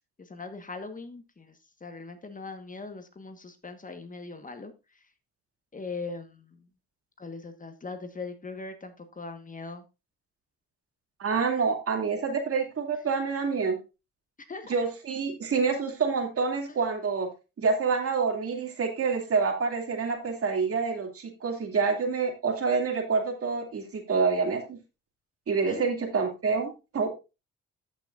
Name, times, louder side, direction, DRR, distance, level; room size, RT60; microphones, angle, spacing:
voice 1, 0.2-1.5 1.8-4.7 5.7-6.6 7.2-9.8 14.5-14.7 25.6-25.9, left 3 dB, 25° left, 8 dB, 1.4 m, -40 dB
voice 2, 11.2-13.8 14.7-17.3 17.6-24.8 25.5-27.1, right 5 dB, 50° right, 4 dB, 2.5 m, -27 dB
13.5 x 6.1 x 2.5 m, 0.27 s
cardioid pair, 90°, 30 cm